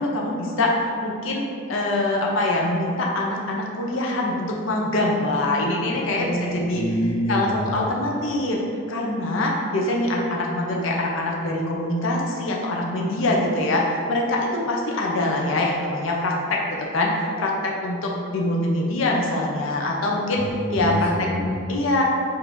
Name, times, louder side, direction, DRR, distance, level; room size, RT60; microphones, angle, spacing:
voice 1, 0.0-1.4 1.7-6.8 7.3-8.6 8.9-20.4 20.7-21.3 21.7-22.0, left 1 dB, 70° left, -1 dB, 0.6 m, -24 dB
voice 2, 6.1-7.9 20.4-21.7, equal, 30° left, -4 dB, 0.4 m, -27 dB
3.6 x 2.6 x 4.4 m, 2.3 s
head